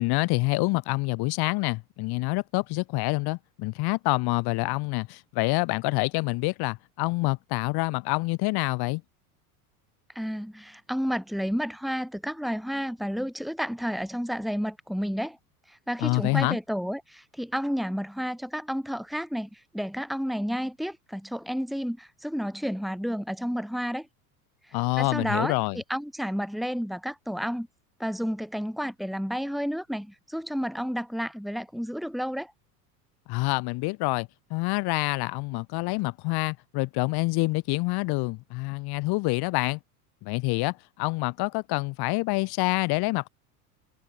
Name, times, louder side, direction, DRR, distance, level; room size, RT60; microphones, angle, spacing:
voice 1, 0.0-9.0 16.0-16.6 24.7-25.8 33.3-39.8 40.2-43.3, left 23 dB, 55° left, 2.7 m, -27 dB
voice 2, 10.1-15.4 15.7-24.1 24.6-27.7 28.0-32.5, equal, ahead, 6.6 m, -31 dB
hypercardioid pair, 90°, 46 cm